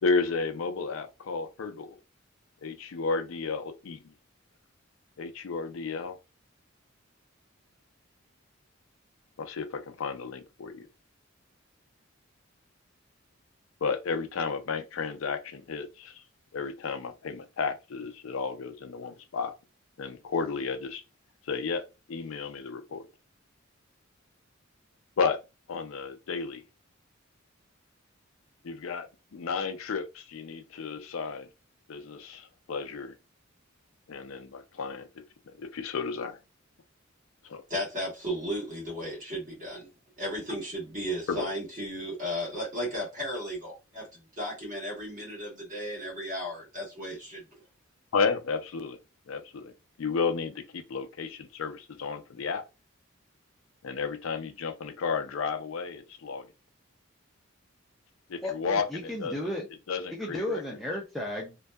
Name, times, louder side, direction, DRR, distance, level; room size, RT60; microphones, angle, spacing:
voice 1, 0.0-2.0 2.6-4.1 5.2-6.2 9.4-10.8 13.8-16.2 16.5-19.5 20.0-21.0 21.5-23.1 25.2-25.4 25.7-26.6 28.6-31.5 31.9-33.1 34.1-35.1 35.6-36.4 37.4-37.6 41.3-41.5 48.1-49.0 49.3-49.7 50.0-52.6 53.8-56.5 58.3-59.4 59.9-60.6, left 5 dB, 80° left, 0.4 m, -32 dB
voice 2, 37.7-39.9 40.2-47.4, equal, 40° right, 1.2 m, -35 dB
voice 3, 58.4-59.7 60.1-61.6, left 1 dB, ahead, 0.4 m, -34 dB
2.6 x 2.2 x 2.2 m
head